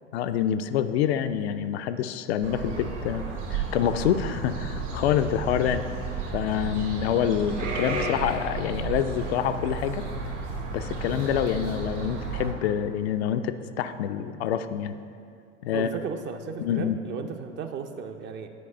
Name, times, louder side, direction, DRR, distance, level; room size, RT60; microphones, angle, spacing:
voice 1, 0.1-3.2 3.5-5.8 6.3-10.0 10.7-14.9 15.6-15.9 16.6-17.0, left 9 dB, 55° left, 9 dB, 0.5 m, -26 dB
sound 1, 2.4-12.5, right 4 dB, 70° right, 1.7 m, -33 dB
voice 2, 15.7-18.5, right 6 dB, 30° right, 6 dB, 0.5 m, -35 dB
9.5 x 4.7 x 5.3 m, 2.4 s
figure-of-eight pair, 75°, 38 cm